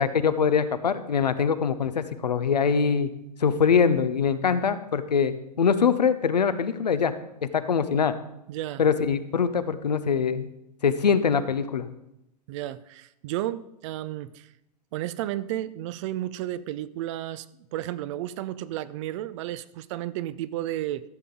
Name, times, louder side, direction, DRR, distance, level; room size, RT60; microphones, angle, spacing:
voice 1, 0.0-3.1 3.4-7.1 7.4-8.1 8.8-10.5 10.8-11.9, left 6 dB, 80° left, 12 dB, 0.7 m, -23 dB
voice 2, 8.5-8.8 12.5-14.5 14.9-17.5 17.7-21.0, right 13 dB, 50° right, 16 dB, 0.5 m, -32 dB
13.5 x 6.8 x 3.8 m, 0.84 s
figure-of-eight pair, 95°, 21 cm